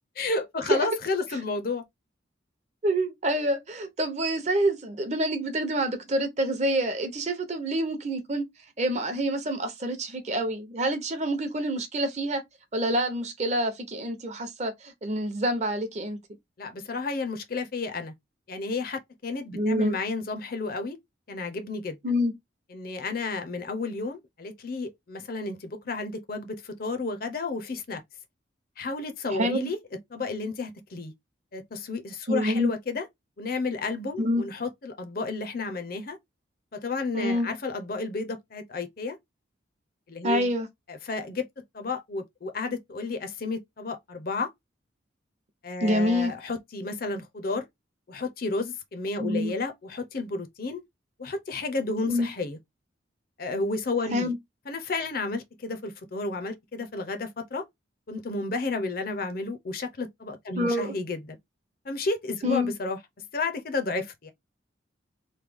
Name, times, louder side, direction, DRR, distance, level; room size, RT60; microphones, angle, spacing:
voice 1, 0.2-1.8 16.6-18.1 18.5-21.0 21.3-22.0 22.7-28.0 28.8-29.8 30.1-31.1 31.5-33.1 33.4-36.2 36.7-39.2 40.1-40.5 40.9-44.5 45.6-47.6 48.1-50.8 51.2-52.6 53.4-54.3 54.7-57.6 58.1-61.4 61.8-63.0 63.3-64.3, left 3 dB, 50° left, 0.6 m, -32 dB
voice 2, 2.8-8.4 8.8-12.4 12.7-16.2 19.5-20.0 22.0-22.3 29.3-29.7 32.3-32.7 34.2-34.4 37.1-37.5 40.2-40.7 45.8-46.3 49.2-49.5 52.1-52.3 54.1-54.4 60.6-60.9 62.4-62.7, equal, 35° right, 0.7 m, -27 dB
3.1 x 2.2 x 3.4 m
head